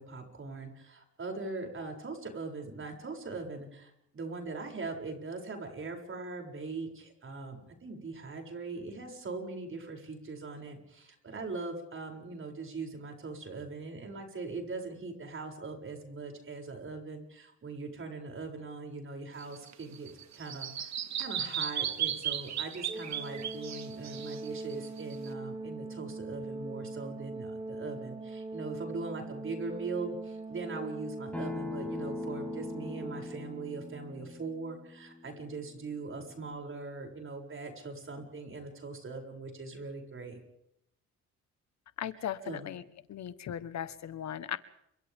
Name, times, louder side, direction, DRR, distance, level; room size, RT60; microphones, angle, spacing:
voice 1, 0.0-20.9 21.2-40.4 42.4-42.7, right 3 dB, 45° right, 3 dB, 7.5 m, -41 dB
Bird vocalization bird call bird song, 19.4-25.3, right 10 dB, 65° right, 2.2 m, -36 dB
Organ, 22.9-33.7, right 2 dB, 20° right, 2.7 m, -41 dB
Acoustic guitar, 31.3-36.5, left 3 dB, 5° left, 5.4 m, -42 dB
voice 2, 42.0-42.8 43.1-44.6, left 10 dB, 65° left, 13 dB, 1.4 m, -37 dB
30.0 x 26.0 x 3.7 m, 0.75 s
cardioid pair, 90°, 30 cm